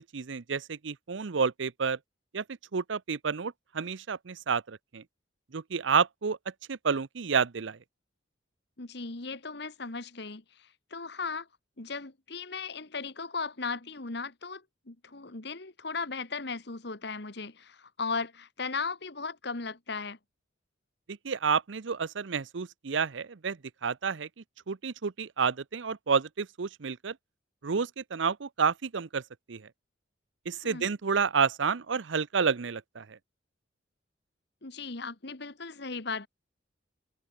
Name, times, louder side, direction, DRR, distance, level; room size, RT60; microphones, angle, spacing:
voice 1, 0.0-2.0 2.3-2.4 2.7-5.0 5.5-6.4 6.7-7.8 21.2-24.3 24.7-27.1 27.6-29.2 29.5-29.6 30.5-33.2, right 6 dB, 75° right, 0.7 m, -30 dB
voice 2, 8.8-11.5 11.8-20.2 30.6-30.9 34.6-36.3, left 4 dB, 60° left, 1.6 m, -37 dB
head